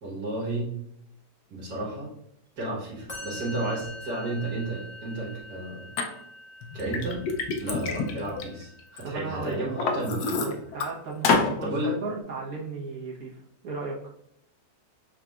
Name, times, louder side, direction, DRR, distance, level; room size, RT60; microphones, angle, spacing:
voice 1, 0.0-0.7 1.5-2.1 2.6-5.9 6.7-7.2 7.6-10.4 11.6-11.9, right 1 dB, 85° right, -5 dB, 2.0 m, -32 dB
Musical instrument, 3.1-10.4, left 1 dB, 25° left, 1.4 m, -45 dB
Liquid, 6.0-6.1 6.6-9.0 9.4-10.9 11.2-11.5, left 4 dB, 75° left, 1.2 m, -27 dB
voice 2, 9.0-9.7 10.3-13.4 13.6-14.0, right 3 dB, 65° right, -4 dB, 1.5 m, -35 dB
5.8 x 3.8 x 2.4 m, 0.75 s
omnidirectional pair, 1.7 m